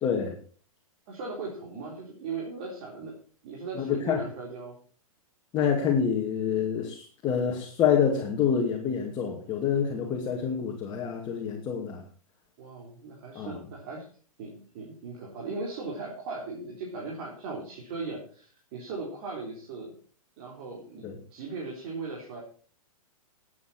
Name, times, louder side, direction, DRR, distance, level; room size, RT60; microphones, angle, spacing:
voice 1, 0.0-0.4 3.8-4.2 5.5-12.0 13.3-13.6 21.0-21.1, left 7 dB, 25° left, 0 dB, 2.5 m, -27 dB
voice 2, 1.1-3.1 3.4-4.8 12.6-14.1 14.4-19.9 20.4-21.0 21.3-22.4, right 3 dB, 45° right, -2 dB, 4.1 m, -38 dB
19.0 x 8.6 x 4.5 m, 0.42 s
figure-of-eight pair, 115°, 18 cm